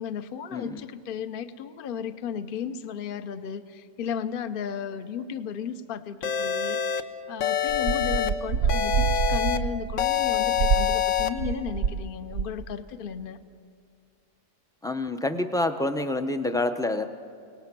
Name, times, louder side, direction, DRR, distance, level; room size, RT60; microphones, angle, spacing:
voice 1, 0.0-7.0 7.3-13.4, left 7 dB, 50° left, 11 dB, 0.8 m, -34 dB
voice 2, 0.5-0.9 14.8-17.0, left 2 dB, 5° left, 8 dB, 0.4 m, -27 dB
sound 1, 6.2-7.0 7.4-8.3 8.7-9.6 10.0-11.3, left 9 dB, 65° left, 1.2 m, -25 dB
sound 2, 7.7-12.0 12.3-12.7, right 7 dB, 75° right, 1.1 m, -27 dB
29.5 x 19.0 x 6.0 m, 2.2 s
omnidirectional pair, 1.4 m